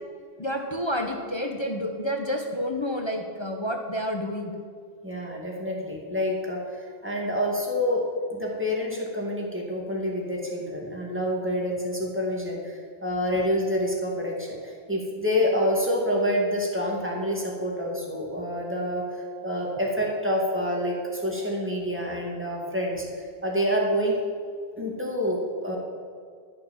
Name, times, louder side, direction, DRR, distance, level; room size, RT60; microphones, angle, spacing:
voice 1, 0.4-4.5, equal, 30° left, 3 dB, 0.8 m, -29 dB
voice 2, 5.0-8.0 8.3-24.2 24.8-25.8, equal, 10° right, -2 dB, 2.2 m, -27 dB
11.5 x 6.6 x 7.2 m, 2.1 s
omnidirectional pair, 1.1 m